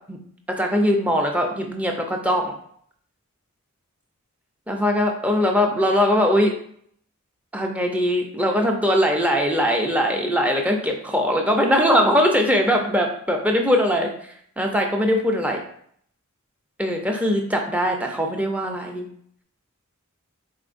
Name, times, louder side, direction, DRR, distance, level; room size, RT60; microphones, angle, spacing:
voice 1, 0.5-2.5 4.7-6.5 7.5-15.6 16.8-19.1, equal, 5° right, 2 dB, 0.6 m, -21 dB
4.8 x 4.0 x 2.5 m, 0.64 s
head